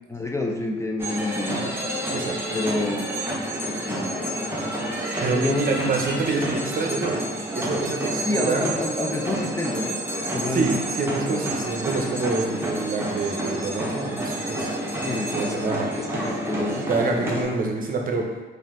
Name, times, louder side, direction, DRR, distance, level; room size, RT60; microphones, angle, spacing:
voice 1, 0.1-1.7 2.5-3.2 3.7-4.4 5.3-5.7 8.3-10.0 10.3-10.9 11.2-11.6 15.0-16.9, left 2 dB, 15° left, 1 dB, 0.4 m, -29 dB
sound 1, 1.0-17.4, right 1 dB, 10° right, 0.9 m, -29 dB
voice 2, 5.2-7.2 7.5-8.7 10.5-14.7 15.3-15.9 16.9-18.3, right 3 dB, 45° right, 1 dB, 0.7 m, -26 dB
4.2 x 2.6 x 3.6 m, 1.2 s
cardioid pair, 90°, 20 cm